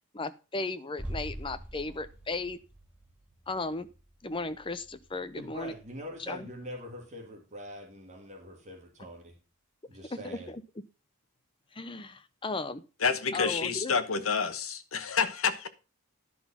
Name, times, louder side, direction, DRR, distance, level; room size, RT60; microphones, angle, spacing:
voice 1, 0.1-2.6 3.5-3.9 4.2-5.7 6.3-6.5 10.1-10.6 11.7-12.8 13.3-14.0, left 3 dB, 25° left, 12 dB, 0.7 m, -35 dB
sound 1, 1.0-6.7 7.0-7.1, equal, 5° right, 2.3 m, -45 dB
voice 2, 5.4-9.4 9.9-10.5, equal, 30° right, 1 dB, 2.6 m, -43 dB
voice 3, 13.0-15.7, left 5 dB, 70° left, 10 dB, 1.1 m, -28 dB
11.0 x 6.0 x 5.7 m, 0.32 s
head